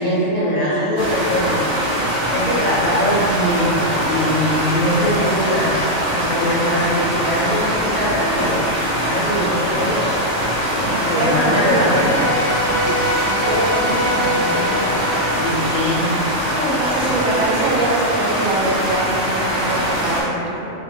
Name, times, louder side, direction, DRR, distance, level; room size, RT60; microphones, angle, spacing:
voice 1, 0.0-1.6 2.3-5.8 6.1-8.7 9.0-10.1 10.7-12.3 15.3-16.1 16.6-16.8, equal, 45° left, -13 dB, 0.5 m, -22 dB
voice 2, 0.5-1.3 10.7-14.9 15.1-15.3 16.8-20.7, right 2 dB, 85° right, -4 dB, 1.0 m, -25 dB
sound 1, 1.0-20.2, equal, 50° right, 0.9 m, -22 dB
sound 2, 5.2-9.8, equal, 25° right, 0.7 m, -36 dB
sound 3, 11.6-16.9, left 1 dB, 70° left, 0.9 m, -25 dB
2.6 x 2.3 x 2.7 m, 2.8 s
omnidirectional pair, 1.4 m